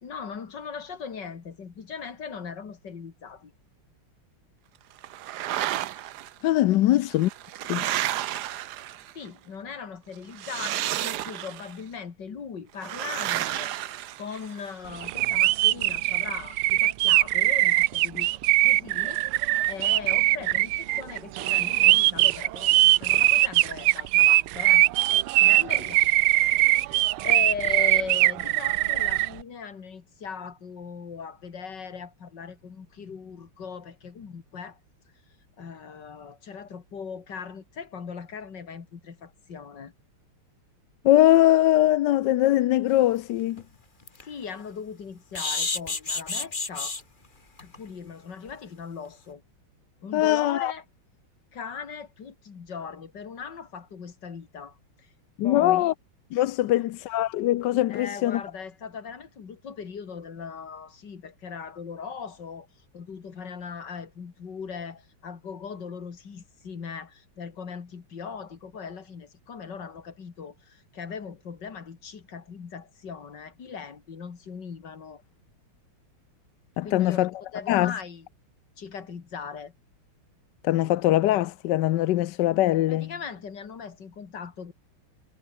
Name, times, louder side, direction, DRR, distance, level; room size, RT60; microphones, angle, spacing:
voice 1, 0.0-3.5 6.8-6.9 9.1-13.7 14.2-24.8 25.4-26.0 26.4-26.9 27.2-34.8 35.6-39.9 44.2-47.0 47.6-49.4 50.0-50.8 51.5-55.1 55.4-55.9 56.7-56.9 57.9-62.7 62.9-75.2 76.8-77.3 77.5-78.3 78.8-79.7 82.9-84.7, left 6 dB, 55° left, 2.8 m, -39 dB
sound 1, 5.0-6.3 7.1-9.3 10.3-11.8 12.8-14.7, right 13 dB, 65° right, 1.1 m, -31 dB
voice 2, 6.4-7.3 7.7-7.9 41.0-43.6 50.1-50.7 55.4-55.9 56.3-58.4 76.8-77.3 77.7-77.9 80.6-83.1, left 14 dB, 70° left, 1.1 m, -22 dB
sound 2, 15.0-29.3, right 16 dB, 90° right, 1.5 m, -21 dB
sound 3, 43.0-43.1 43.6-43.7 44.0-44.2 45.3-47.0 47.6-47.8 48.1-48.2 48.5-48.6, left 3 dB, 25° left, 1.9 m, -30 dB
omnidirectional pair, 2.3 m